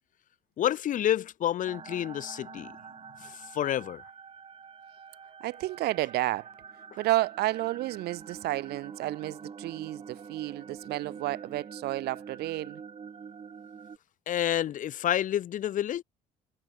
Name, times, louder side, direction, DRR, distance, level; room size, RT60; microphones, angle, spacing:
voice 1, 0.6-2.7 3.2-4.0 14.3-16.0, left 11 dB, 50° left, 0.7 m, -29 dB
sound 1, 1.6-14.0, right 6 dB, 35° right, 2.2 m, -46 dB
voice 2, 5.4-6.5 7.0-12.8, right 17 dB, 70° right, 0.6 m, -31 dB
cardioid pair, 110°, 17 cm